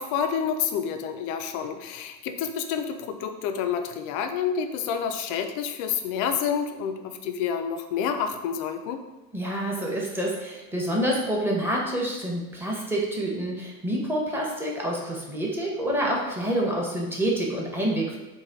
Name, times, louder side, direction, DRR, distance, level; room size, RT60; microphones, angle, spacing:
voice 1, 0.0-9.0, left 7 dB, 40° left, 7 dB, 0.4 m, -29 dB
voice 2, 9.3-18.2, right 1 dB, 5° right, -3 dB, 0.8 m, -27 dB
3.1 x 2.6 x 3.8 m, 1.1 s
hypercardioid pair, 75°, 49 cm